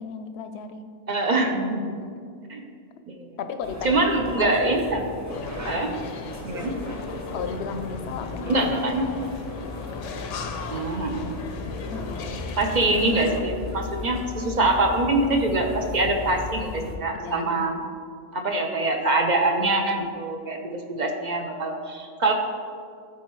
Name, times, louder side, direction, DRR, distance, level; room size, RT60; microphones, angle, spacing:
voice 1, 0.0-0.9 2.0-2.1 3.4-4.6 5.6-6.0 7.3-8.6 8.8-9.1 11.9-12.3 17.1-17.8, left 5 dB, 70° left, 9 dB, 0.8 m, -35 dB
voice 2, 1.1-1.9 2.5-2.6 3.1-3.3 3.8-5.0 5.6-5.9 6.4-6.7 8.5-9.1 10.7-11.5 12.6-17.8 18.3-22.3, right 2 dB, 45° right, 3 dB, 0.6 m, -24 dB
sound 1, 3.6-16.9, left 2 dB, 15° right, 0.7 m, -36 dB
sound 2, 5.3-13.4, left 4 dB, 90° left, 1.0 m, -37 dB
13.0 x 4.4 x 3.1 m, 2.3 s
omnidirectional pair, 1.2 m